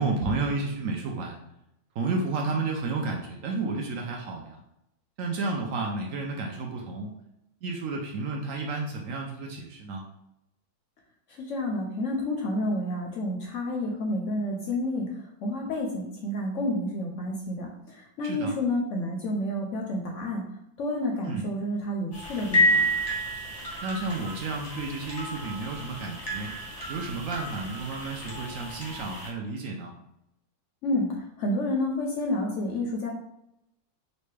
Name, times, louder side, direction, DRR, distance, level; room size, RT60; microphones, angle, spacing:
voice 1, 0.0-1.4 1.9-4.6 5.2-7.2 7.6-10.0 18.2-18.5 21.2-21.5 23.8-26.5 26.9-29.9, right 3 dB, 70° right, 1 dB, 0.8 m, -31 dB
voice 2, 11.5-15.1 15.4-20.4 20.8-22.8 30.8-31.1 31.4-33.1, left 1 dB, 70° left, 0 dB, 0.8 m, -29 dB
sound 1, 22.1-29.3, equal, 35° left, 0.7 m, -30 dB
4.0 x 2.2 x 3.2 m, 0.82 s
omnidirectional pair, 1.6 m